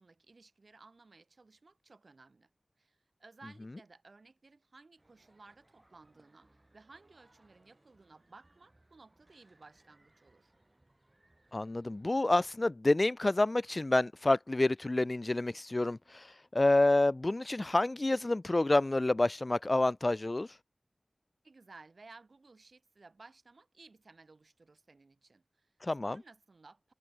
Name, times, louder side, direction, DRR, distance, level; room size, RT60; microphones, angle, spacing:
voice 1, 0.0-2.5 2.8-10.5 21.4-25.7 26.0-26.9, right 3 dB, 75° right, 3.6 m, -58 dB
sound 1, 5.0-12.7, right 1 dB, 35° right, 5.3 m, -68 dB
voice 2, 11.5-16.3 16.5-20.5 25.8-26.2, left 2 dB, 45° left, 0.3 m, -28 dB
wide cardioid pair, 45°, 0 cm